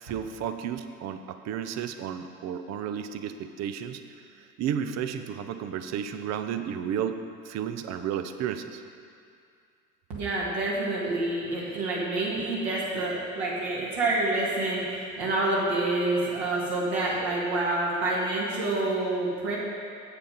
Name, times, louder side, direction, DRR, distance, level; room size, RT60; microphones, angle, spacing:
voice 1, 0.0-4.0 4.6-8.8, right 8 dB, 40° right, 9 dB, 0.6 m, -32 dB
voice 2, 10.1-19.6, right 2 dB, 55° right, -6 dB, 2.1 m, -27 dB
7.7 x 6.8 x 5.4 m, 2.3 s
hypercardioid pair, 75°, 43 cm